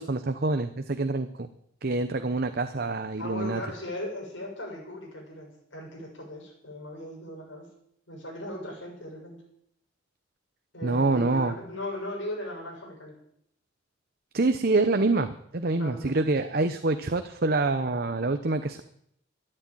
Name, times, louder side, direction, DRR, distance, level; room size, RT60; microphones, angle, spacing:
voice 1, 0.0-1.5 1.8-3.6 10.8-11.5 14.3-18.8, right 3 dB, 50° right, 9 dB, 0.8 m, -26 dB
voice 2, 3.2-7.7 8.1-9.4 10.7-13.2 15.8-16.2, left 1 dB, 75° left, -1 dB, 7.0 m, -38 dB
13.0 x 9.9 x 9.0 m, 0.71 s
head